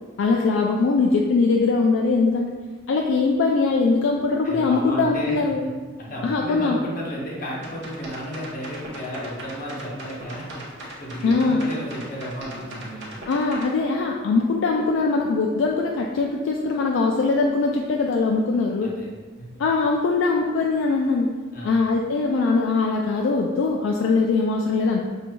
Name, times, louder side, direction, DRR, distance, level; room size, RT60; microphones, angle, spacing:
voice 1, 0.2-2.5 2.9-5.6 6.2-6.8 11.2-11.7 13.3-18.9 19.6-21.3 21.6-25.0, left 3 dB, 65° left, 0 dB, 0.3 m, -21 dB
voice 2, 4.4-5.7 6.0-13.2 18.8-19.1 21.5-21.8, equal, 40° left, -3 dB, 0.8 m, -34 dB
sound 1, 7.5-13.7, right 1 dB, 55° right, 0.9 m, -38 dB
6.0 x 2.6 x 2.2 m, 1.4 s
head